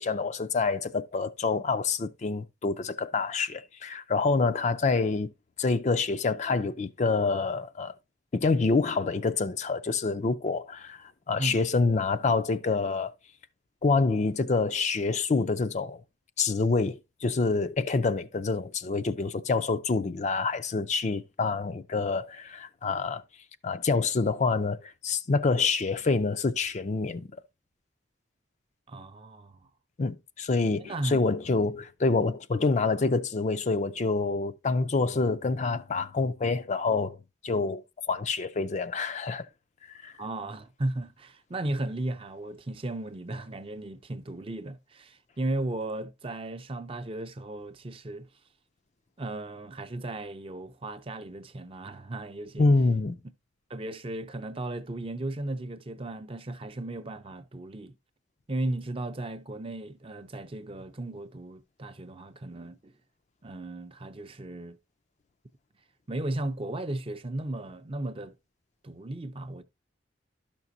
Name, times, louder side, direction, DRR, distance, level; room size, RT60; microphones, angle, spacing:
voice 1, 0.0-5.3 5.6-7.9 8.3-13.1 13.8-16.0 16.4-23.2 23.6-27.3 30.0-37.2 37.4-37.8 38.1-39.5 40.0-40.1 52.6-53.2, left 4 dB, 40° left, 0.4 m, -27 dB
voice 2, 28.9-29.7 30.8-31.2 32.1-32.3 40.2-48.3 49.2-52.7 53.7-57.9 58.5-62.9 63.4-64.8 66.1-68.3 68.8-69.6, right 2 dB, 30° right, 0.5 m, -35 dB
11.5 x 6.0 x 2.6 m
head